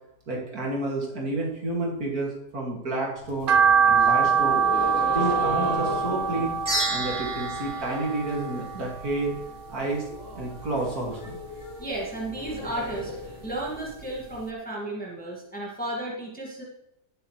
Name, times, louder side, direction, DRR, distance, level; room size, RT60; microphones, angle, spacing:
voice 1, 0.3-3.5 3.8-4.6 5.0-6.6 6.9-9.3 9.7-10.1 10.3-11.4, right 2 dB, 60° right, -3 dB, 2.8 m, -30 dB
sound 1, 3.2-8.2 8.5-9.0 9.3-9.4 9.7-9.8 10.1-14.1, left 2 dB, 50° left, 3.7 m, -37 dB
sound 2, 3.5-9.8 10.1-11.3 11.6-13.1 13.4-13.5 14.0-14.1 14.3-14.4, right 6 dB, 80° right, 0.5 m, -24 dB
sound 3, 6.7-9.1, right 2 dB, 30° right, 4.3 m, -32 dB
voice 2, 11.8-13.1 13.4-16.6, right 1 dB, 5° left, -4 dB, 1.9 m, -33 dB
15.5 x 7.3 x 3.2 m, 0.81 s
omnidirectional pair, 1.8 m